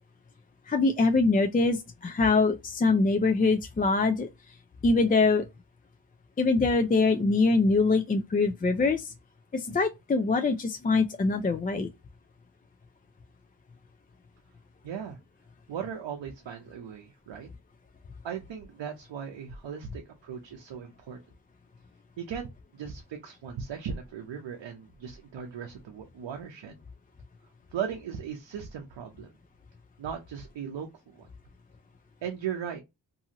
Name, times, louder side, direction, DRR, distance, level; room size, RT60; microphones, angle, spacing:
voice 1, 0.7-4.3 4.8-5.4 6.4-9.1 9.5-11.9, left 3 dB, 20° left, 0.3 m, -24 dB
voice 2, 14.8-15.2 15.7-17.5 18.2-21.2 22.2-26.8 27.7-29.3 30.0-31.3 32.2-32.8, right 7 dB, 85° right, 0.6 m, -38 dB
2.7 x 2.5 x 2.7 m
cardioid pair, 45°, 43 cm